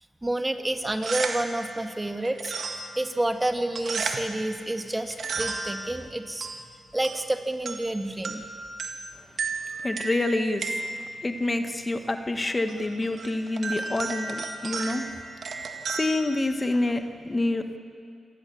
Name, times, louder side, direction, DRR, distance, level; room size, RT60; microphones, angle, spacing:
voice 1, 0.2-2.5 3.0-6.5 6.9-8.4, right 1 dB, 20° right, 6 dB, 1.8 m, -29 dB
sound 1, 0.8-17.1, right 4 dB, 65° right, 1.8 m, -35 dB
voice 2, 9.8-10.9 11.2-15.0 15.9-17.8, left 2 dB, 30° left, 7 dB, 1.5 m, -27 dB
27.0 x 15.5 x 7.3 m, 2.3 s
supercardioid pair, 40°, 0 cm